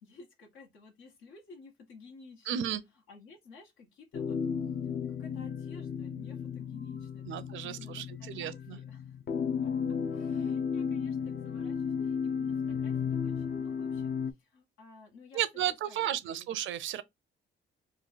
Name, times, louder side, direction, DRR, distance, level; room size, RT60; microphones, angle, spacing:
voice 1, 0.0-2.6 3.1-4.4 5.1-9.2 9.6-9.7 10.1-15.4 15.7-16.5, left 4 dB, 90° left, 1.3 m, -54 dB
voice 2, 2.5-2.8 7.3-8.8 15.3-17.0, right 11 dB, 75° right, 0.6 m, -33 dB
sound 1, 4.1-14.3, left 6 dB, 50° left, 0.5 m, -34 dB
3.1 x 2.2 x 3.9 m
cardioid pair, 90°, 20 cm